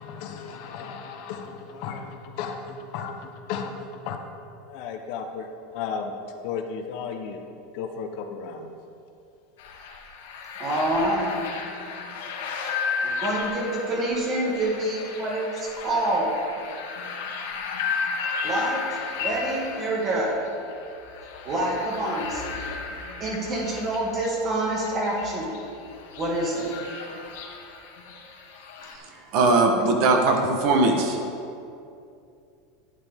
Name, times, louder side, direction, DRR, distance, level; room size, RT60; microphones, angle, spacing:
voice 1, 0.0-4.2 4.7-5.5 5.7-6.2 6.4-7.4 7.7-8.7, left 6 dB, 45° left, 5 dB, 0.8 m, -34 dB
sound 1, 9.6-28.9, left 5 dB, 85° left, 1.7 m, -34 dB
voice 2, 10.6-11.3 13.0-16.3 18.4-20.4 21.5-22.6 23.2-25.5 26.2-26.6 29.1-29.2, right 1 dB, 25° right, -2 dB, 1.9 m, -27 dB
voice 3, 29.3-31.2, right 3 dB, 45° right, 3 dB, 1.1 m, -20 dB
12.0 x 9.4 x 3.6 m, 2.5 s
supercardioid pair, 170°, 0 cm